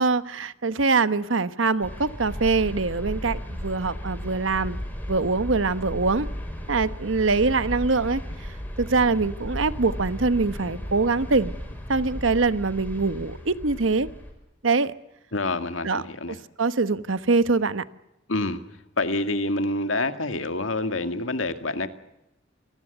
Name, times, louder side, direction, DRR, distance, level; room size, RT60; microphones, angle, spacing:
voice 1, 0.0-4.8 5.1-6.3 6.7-8.2 8.8-11.5 11.9-14.1 14.6-14.9 15.8-16.0 16.3-17.8, right 3 dB, 80° right, 14 dB, 1.1 m, -23 dB
sound 1, 1.8-14.3, equal, 10° left, 6.0 m, -35 dB
voice 2, 15.3-16.4 18.3-18.6 19.0-21.9, left 2 dB, 80° left, 9 dB, 2.1 m, -27 dB
27.5 x 19.0 x 8.1 m, 0.90 s
head